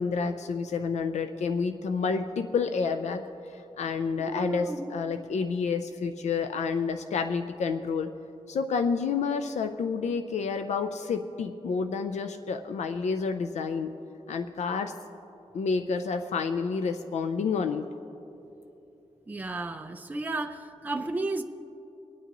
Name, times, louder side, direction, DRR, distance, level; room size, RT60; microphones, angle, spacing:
voice 1, 0.0-8.1 8.5-13.9 14.3-14.9 15.5-17.9, left 5 dB, 85° left, 7 dB, 0.5 m, -29 dB
voice 2, 4.2-4.9 19.3-21.4, right 2 dB, 15° right, 5 dB, 0.5 m, -33 dB
24.5 x 9.3 x 3.0 m, 2.9 s
wide cardioid pair, 160°, 11 cm